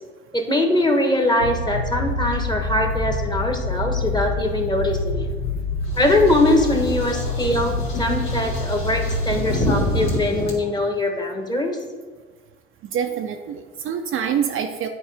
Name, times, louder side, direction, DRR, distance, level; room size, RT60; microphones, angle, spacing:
voice 1, 0.3-5.3 6.0-11.8, left 1 dB, 15° left, 4 dB, 1.2 m, -22 dB
sound 1, 1.4-10.3, left 2 dB, 85° left, 0.7 m, -26 dB
sound 2, 5.9-10.5, left 1 dB, 65° left, 2.1 m, -29 dB
voice 2, 12.9-14.9, right 8 dB, 40° right, 5 dB, 0.6 m, -25 dB
9.5 x 4.6 x 3.4 m, 1.4 s
hypercardioid pair, 65°, 32 cm